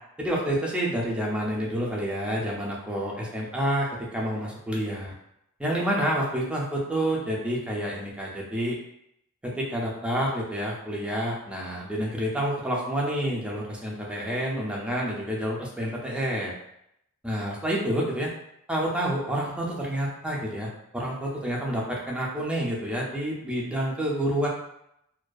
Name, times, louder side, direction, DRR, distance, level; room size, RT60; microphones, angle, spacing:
voice 1, 0.2-5.1 5.6-8.8 9.4-16.5 17.2-18.3 18.7-24.5, equal, 5° right, -3 dB, 0.4 m, -28 dB
2.4 x 2.2 x 2.3 m, 0.79 s
head